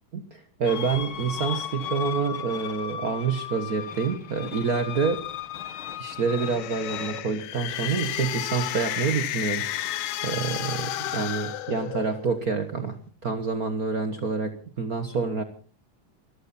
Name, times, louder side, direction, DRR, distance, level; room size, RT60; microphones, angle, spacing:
voice 1, 0.1-5.2 6.0-10.0 10.2-15.4, right 5 dB, 70° right, 8 dB, 0.8 m, -28 dB
sound 1, 0.7-7.2, left 9 dB, 65° left, 1.3 m, -36 dB
sound 2, 6.3-12.4, left 14 dB, 80° left, 2.4 m, -32 dB
23.5 x 14.5 x 4.2 m, 0.42 s
omnidirectional pair, 3.7 m